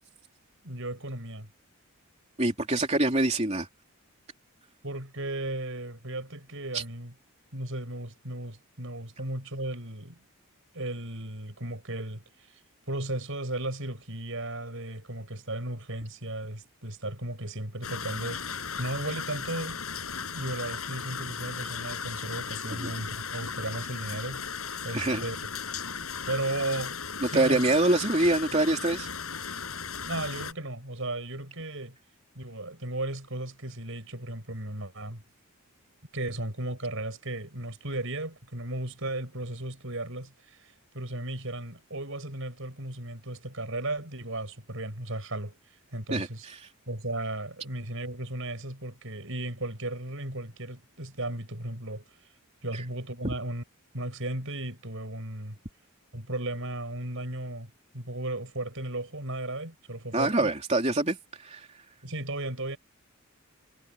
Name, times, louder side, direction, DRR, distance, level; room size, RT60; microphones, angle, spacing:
voice 1, 0.6-1.5 4.8-7.1 7.5-10.2 10.7-12.2 12.9-19.8 20.2-24.4 24.8-25.4 26.3-27.0 27.3-27.6 30.1-32.0 32.3-35.2 36.1-40.6 40.9-45.5 45.9-46.5 46.9-52.0 52.6-53.6 53.9-55.6 56.1-60.5 62.0-62.8, right 1 dB, 60° right, 6.7 m, -35 dB
voice 2, 2.4-3.7 6.7-6.8 22.7-22.9 24.9-25.2 27.2-29.1 46.1-46.5 60.1-61.7, right 2 dB, 30° right, 3.3 m, -25 dB
sound 1, 17.8-30.5, left 6 dB, 75° left, 7.8 m, -36 dB
head